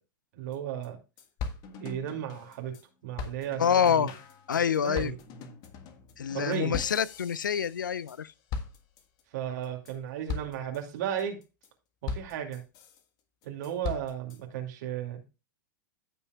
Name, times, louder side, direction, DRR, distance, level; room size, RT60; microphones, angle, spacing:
voice 1, 0.3-1.0 1.8-2.7 3.0-4.1 4.8-5.2 6.3-6.8 9.3-11.4 12.0-12.6 13.4-15.3, right 10 dB, 60° right, 2.3 m, -34 dB
sound 1, 0.5-0.6 0.8-0.9 1.2-2.8 3.2-8.2 8.5-9.2 9.6-9.9 10.3-10.8 11.2-11.7 12.1-13.0 13.4-14.4, left 5 dB, 40° left, 1.5 m, -39 dB
voice 2, 3.6-4.1 4.5-5.1 6.2-8.3, left 8 dB, 85° left, 0.5 m, -26 dB
15.5 x 5.6 x 2.3 m
hypercardioid pair, 100°, 10 cm